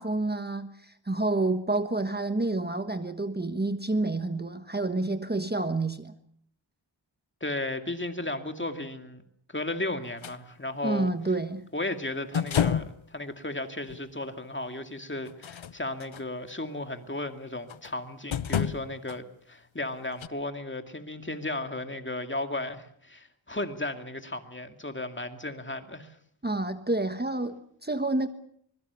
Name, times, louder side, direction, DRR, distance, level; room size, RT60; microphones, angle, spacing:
voice 1, 0.0-6.1 10.8-11.7 26.4-28.3, right 2 dB, 20° right, 1.3 m, -29 dB
voice 2, 7.4-9.2 9.5-11.1 11.7-26.2, left 2 dB, 25° left, 2.4 m, -35 dB
sound 1, 10.2-10.4 12.3-13.0 13.9-14.0 15.3-16.2 17.7-17.9 18.3-19.2 20.2-20.3, left 9 dB, 90° left, 0.9 m, -29 dB
24.5 x 22.0 x 7.0 m
wide cardioid pair, 75°, 45 cm